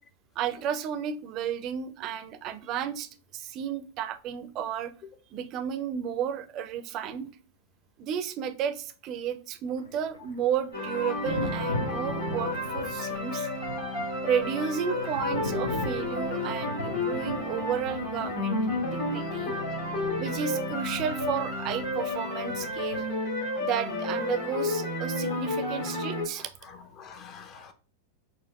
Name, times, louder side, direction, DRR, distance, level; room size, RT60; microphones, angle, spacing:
voice 1, 0.4-4.9 5.3-7.3 8.0-13.5 14.2-19.5 20.2-23.0 23.6-26.5, right 8 dB, 35° right, 0.4 m, -32 dB
Thunder, 9.8-23.4 25.1-25.3, left 2 dB, 80° left, 0.5 m, -40 dB
sound 1, 10.7-26.2, left 2 dB, 65° left, 1.4 m, -31 dB
voice 2, 26.3-27.7, left 6 dB, 35° left, 0.6 m, -48 dB
4.3 x 2.3 x 2.3 m
figure-of-eight pair, 90°, 0 cm